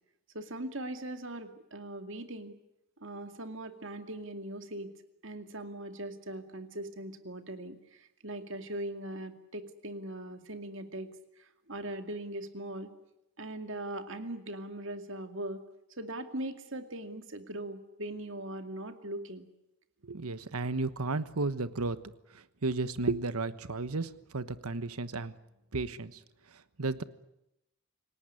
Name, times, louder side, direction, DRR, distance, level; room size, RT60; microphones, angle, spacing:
voice 1, 0.3-2.6 3.0-4.9 5.2-11.1 11.4-12.9 13.4-15.6 16.0-19.5, right 1 dB, 60° right, 7 dB, 2.4 m, -40 dB
voice 2, 20.0-25.3 25.7-26.2 26.8-27.0, right 3 dB, 80° right, 13 dB, 1.2 m, -33 dB
28.5 x 18.5 x 9.8 m, 0.88 s
head